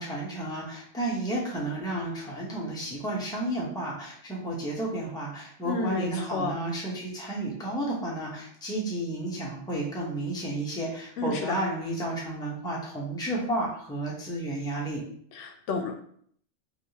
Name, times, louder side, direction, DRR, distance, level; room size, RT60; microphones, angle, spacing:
voice 1, 0.0-15.0, right 1 dB, 5° left, -5 dB, 0.7 m, -32 dB
voice 2, 5.6-6.5 11.2-11.5 15.4-15.9, left 4 dB, 80° left, 4 dB, 0.9 m, -30 dB
3.2 x 2.7 x 2.8 m, 0.62 s
omnidirectional pair, 1.2 m